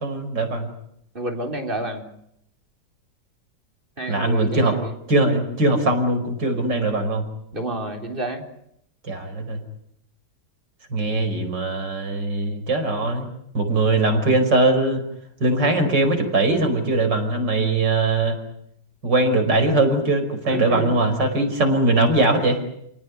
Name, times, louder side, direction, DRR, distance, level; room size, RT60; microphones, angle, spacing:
voice 1, 0.0-0.7 4.1-4.8 5.1-7.3 9.0-9.6 10.9-13.3 13.5-15.0 15.4-18.4 19.0-22.6, right 2 dB, 90° right, 5 dB, 5.9 m, -21 dB
voice 2, 1.1-2.1 4.0-4.9 7.5-8.4 20.5-21.1, right 1 dB, 30° right, 4 dB, 4.0 m, -29 dB
30.0 x 18.5 x 9.4 m, 0.76 s
omnidirectional pair, 1.8 m